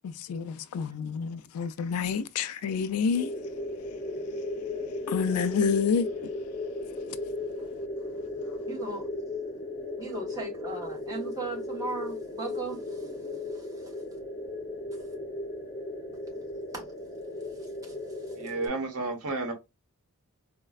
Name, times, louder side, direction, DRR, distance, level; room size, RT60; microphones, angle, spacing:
voice 1, 0.0-3.3 5.1-6.1, left 6 dB, 75° left, 0.3 m, -28 dB
sound 1, 3.1-18.7, left 2 dB, 25° left, 0.7 m, -36 dB
voice 2, 8.7-9.1 10.0-13.1 13.5-13.9 16.3-16.5 16.7-16.9 17.6-18.3, right 3 dB, 15° right, 1.0 m, -38 dB
voice 3, 18.4-19.5, right 3 dB, 80° right, 1.0 m, -31 dB
3.9 x 2.2 x 2.3 m
head